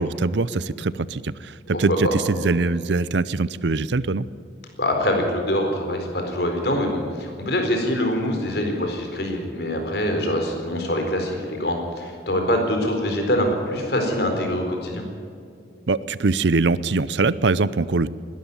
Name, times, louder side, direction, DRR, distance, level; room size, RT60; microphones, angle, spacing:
voice 1, 0.0-4.3 15.9-18.1, right 3 dB, 70° right, 18 dB, 0.6 m, -22 dB
voice 2, 1.7-2.2 4.8-15.0, left 1 dB, 60° left, 3 dB, 4.3 m, -24 dB
20.5 x 13.0 x 9.8 m, 2.4 s
head